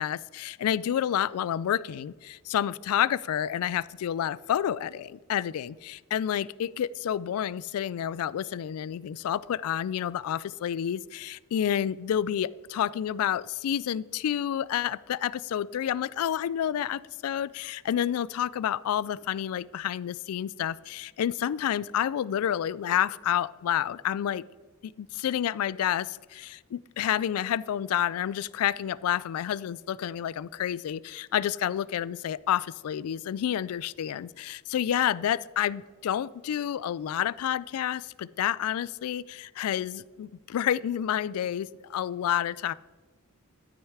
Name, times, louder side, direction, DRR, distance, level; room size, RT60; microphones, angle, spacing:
voice 1, 0.0-24.4 24.8-42.7, left 10 dB, 70° left, 19 dB, 0.3 m, -29 dB
12.5 x 6.4 x 4.8 m, 1.3 s
head